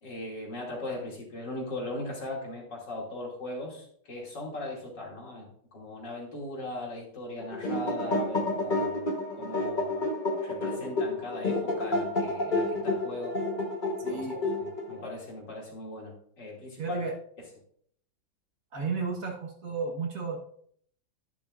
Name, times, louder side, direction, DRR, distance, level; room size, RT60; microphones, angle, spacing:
voice 1, 0.0-10.1 10.4-13.3 14.0-14.3 14.6-17.1 17.4-17.5, left 2 dB, 65° left, -2 dB, 3.3 m, -39 dB
sound 1, 7.4-15.0, left 2 dB, 30° left, 1.4 m, -30 dB
voice 2, 14.0-14.4 16.8-17.1 18.7-20.4, right 4 dB, 50° right, 0 dB, 1.7 m, -33 dB
11.0 x 10.5 x 2.5 m, 0.63 s
omnidirectional pair, 2.0 m